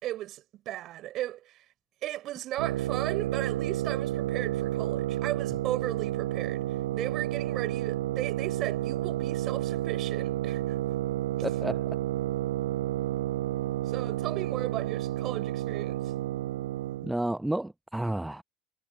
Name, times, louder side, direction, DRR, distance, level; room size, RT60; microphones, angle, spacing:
voice 1, 0.0-1.6 2.0-6.7 6.9-10.8 13.9-16.0, right 14 dB, 50° right, 4.5 m, -36 dB
sound 1, 2.6-17.1, right 14 dB, 70° right, 0.8 m, -31 dB
voice 2, 11.4-11.8 17.0-18.4, right 1 dB, 5° right, 0.8 m, -31 dB
figure-of-eight pair, 65°, 0 cm